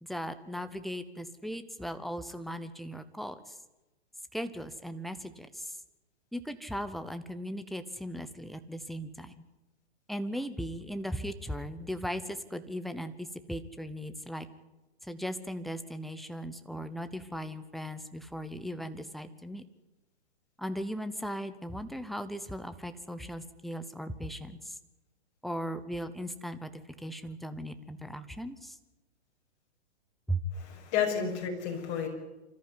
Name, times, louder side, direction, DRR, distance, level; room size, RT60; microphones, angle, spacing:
voice 1, 0.0-3.6 4.3-5.8 6.3-9.4 10.1-14.5 15.0-19.6 20.6-24.8 25.4-28.8 30.3-30.4, equal, ahead, 10 dB, 0.8 m, -38 dB
voice 2, 30.5-32.1, left 7 dB, 40° left, 1 dB, 6.8 m, -31 dB
25.5 x 14.0 x 9.8 m, 1.0 s
hypercardioid pair, 140°, 33 cm